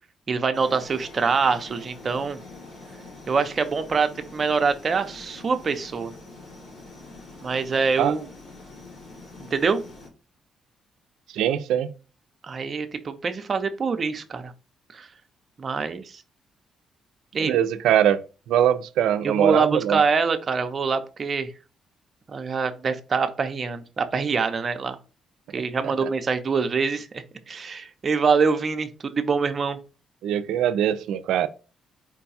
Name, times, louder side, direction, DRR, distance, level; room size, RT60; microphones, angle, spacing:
voice 1, 0.3-2.4 3.3-6.1 7.4-8.3 9.5-9.8 12.5-14.5 14.9-15.1 15.6-16.2 17.3-17.6 19.2-21.5 22.3-25.0 25.5-29.8, right 5 dB, 40° right, 0.6 m, -25 dB
sound 1, 0.5-10.1, left 3 dB, 50° left, 2.5 m, -44 dB
voice 2, 11.3-11.9 17.4-20.0 25.8-26.1 30.2-31.5, right 10 dB, 85° right, 0.4 m, -22 dB
4.6 x 2.3 x 4.1 m
cardioid pair, 90°, 0 cm